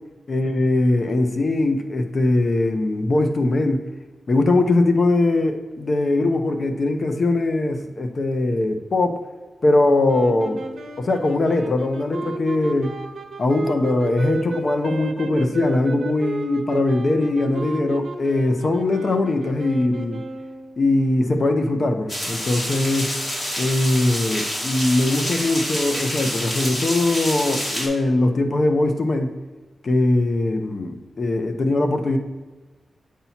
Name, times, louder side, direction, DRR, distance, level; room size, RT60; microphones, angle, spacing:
voice 1, 0.3-3.8 4.3-9.2 9.6-10.6 11.0-13.0 13.4-20.2 20.8-23.2 23.6-29.4 29.8-32.2, left 2 dB, 50° left, 5 dB, 0.8 m, -21 dB
sound 1, 10.1-20.8, right 3 dB, 65° right, 1.0 m, -34 dB
sound 2, 22.1-27.9, equal, 25° left, 2.0 m, -27 dB
8.4 x 2.8 x 5.8 m, 1.3 s
wide cardioid pair, 105°, 0 cm